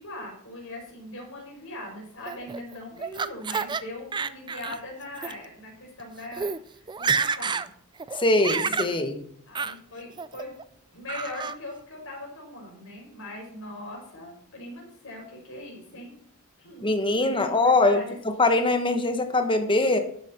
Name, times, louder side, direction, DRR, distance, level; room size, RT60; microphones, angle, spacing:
voice 1, 0.0-7.6 8.6-9.0 9.5-10.5 10.9-16.1 16.6-18.2, left 1 dB, 60° left, 0 dB, 4.9 m, -40 dB
Laughter, 2.3-3.8 4.1-4.8 5.2-5.3 6.0-6.1 6.3-6.6 6.9-7.7 8.0-8.9 9.5-9.8 10.2-10.6 11.1-11.6, right 5 dB, 20° right, 0.4 m, -29 dB
voice 2, 8.2-9.2 16.8-20.0, left 2 dB, 20° left, 8 dB, 1.2 m, -22 dB
12.0 x 8.3 x 4.3 m, 0.65 s
head